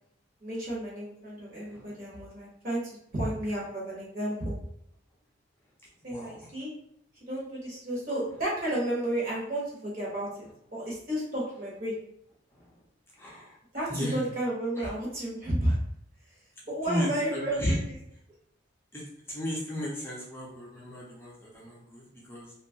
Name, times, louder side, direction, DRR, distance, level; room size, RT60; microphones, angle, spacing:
voice 1, 0.4-4.6 6.0-6.7 7.3-12.0 13.7-15.8 16.7-17.8, right 1 dB, 45° right, -5 dB, 1.0 m, -32 dB
voice 2, 6.1-6.5 12.5-12.8 13.2-13.6 13.9-14.2 14.8-14.9 16.9-17.8 18.9-22.5, equal, 10° left, -5 dB, 0.6 m, -34 dB
2.7 x 2.3 x 2.7 m, 0.70 s
head